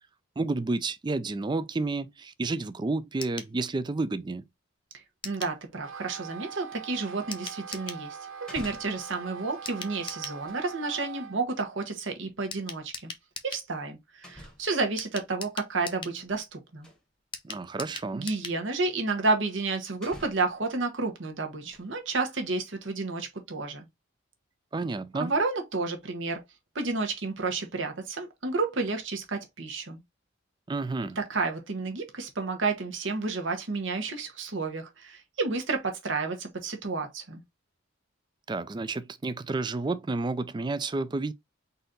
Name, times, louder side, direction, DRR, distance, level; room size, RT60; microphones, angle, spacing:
voice 1, 0.4-4.5 17.4-18.3 24.7-25.3 30.7-31.2 38.5-41.3, right 3 dB, 20° right, 0.3 m, -30 dB
sound 1, 3.2-3.5 5.2-5.6 7.3-8.0 9.6-10.4 12.5-13.7 15.0-16.2 17.3-18.6 18.9-19.0 19.3-19.4, left 5 dB, 25° left, 0.6 m, -40 dB
voice 2, 5.2-13.1 13.4-16.9 18.1-23.9 25.2-26.4 26.7-30.0 31.2-37.4, right 3 dB, 65° right, 1.1 m, -31 dB
Wind instrument woodwind instrument, 5.7-11.4, right 6 dB, 90° right, 0.6 m, -42 dB
sound 2, 8.3-9.1 10.2-11.1 12.8-12.9 14.2-14.8 15.9-16.5 16.8-17.0 17.9-18.0 19.4-19.5 20.0-20.6 21.4-22.0 22.4-22.5, equal, 5° left, 1.0 m, -48 dB
4.0 x 2.7 x 3.7 m
head